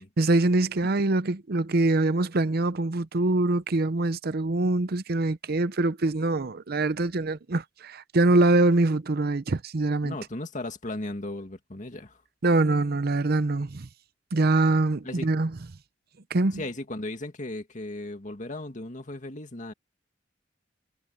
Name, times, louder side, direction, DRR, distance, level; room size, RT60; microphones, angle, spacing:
voice 1, 0.2-10.2 12.4-13.9 14.3-15.5 16.3-16.6, right 2 dB, 55° right, 0.7 m, -24 dB
voice 2, 10.0-12.2 15.0-15.3 16.5-19.7, left 2 dB, 45° left, 2.3 m, -36 dB
head